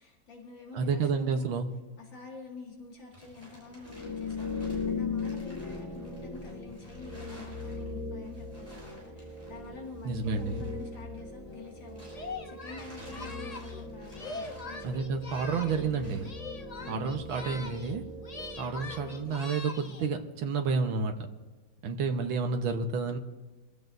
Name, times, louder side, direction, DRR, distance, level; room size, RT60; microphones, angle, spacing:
voice 1, 0.0-1.7 2.0-14.9 15.5-16.3 16.8-17.2 19.0-19.4 22.0-22.5, left 4 dB, 70° left, -2 dB, 2.9 m, -48 dB
voice 2, 0.7-1.7 10.0-10.6 14.8-16.3 16.9-18.0 18.6-21.3 21.8-23.2, right 5 dB, 85° right, 4 dB, 1.9 m, -30 dB
sound 1, 2.7-12.4 12.7-16.4, right 1 dB, 10° right, 5.3 m, -54 dB
sound 2, 3.8-19.6, left 3 dB, 15° left, 2.0 m, -39 dB
Singing, 12.1-15.9 16.2-18.0 18.2-20.1, left 3 dB, 45° left, 0.5 m, -42 dB
24.5 x 15.0 x 2.7 m, 1.2 s
omnidirectional pair, 2.1 m